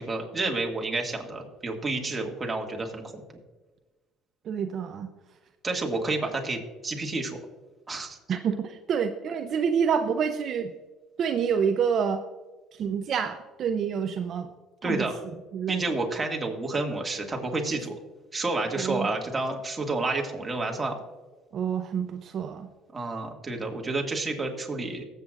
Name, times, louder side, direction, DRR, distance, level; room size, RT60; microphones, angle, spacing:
voice 1, 0.0-3.2 5.6-7.4 7.9-8.2 14.8-15.2 15.7-18.0 18.3-21.0 22.9-25.0, right 2 dB, 20° right, 1 dB, 2.0 m, -30 dB
voice 2, 4.4-5.1 8.3-10.7 11.2-12.2 12.7-14.5 14.8-15.1 15.5-15.9 18.8-19.1 21.5-22.7, right 7 dB, 50° right, 6 dB, 0.6 m, -27 dB
19.0 x 8.1 x 2.5 m, 1.2 s
cardioid pair, 105°, 0 cm